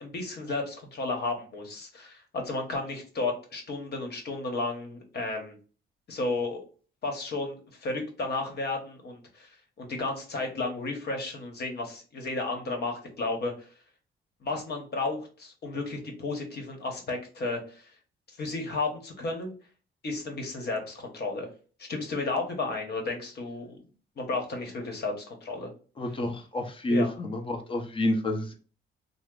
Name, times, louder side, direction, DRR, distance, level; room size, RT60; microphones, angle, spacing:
voice 1, 0.0-5.6 6.1-6.6 7.0-9.5 9.8-13.7 14.4-17.9 18.4-19.5 20.0-21.5 21.8-23.8 24.2-25.7 26.9-27.1, left 3 dB, 55° left, 3 dB, 1.0 m, -33 dB
voice 2, 26.0-28.5, left 1 dB, 25° left, 4 dB, 0.7 m, -28 dB
2.9 x 2.0 x 3.6 m, 0.38 s
cardioid pair, 90°, 20 cm